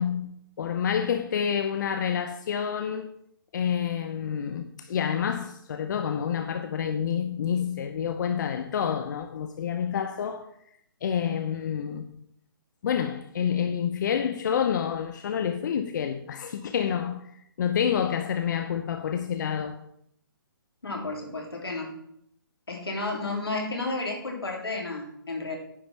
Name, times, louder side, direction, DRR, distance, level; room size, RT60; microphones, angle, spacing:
voice 1, 0.0-3.1 3.5-10.5 11.0-12.1 12.8-19.8, left 8 dB, 50° left, 0.7 m, -28 dB
voice 2, 20.8-21.9 22.7-25.6, left 2 dB, 85° left, 3.3 m, -32 dB
9.9 x 5.1 x 5.9 m
hypercardioid pair, 145°, 12 cm